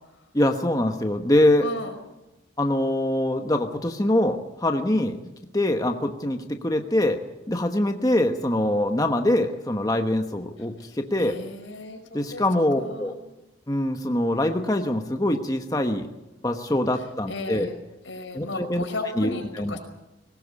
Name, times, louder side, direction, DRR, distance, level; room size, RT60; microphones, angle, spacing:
voice 1, 0.3-1.7 2.6-5.2 5.5-7.2 7.5-11.4 12.1-13.1 13.7-16.1 16.4-17.7 18.3-18.8 19.2-19.8, left 1 dB, 20° left, 5 dB, 1.1 m, -24 dB
voice 2, 1.6-1.9 11.2-12.4 12.8-13.2 17.3-17.7 18.0-19.8, left 2 dB, 90° left, 4 dB, 5.3 m, -35 dB
20.5 x 18.0 x 8.3 m, 0.98 s
head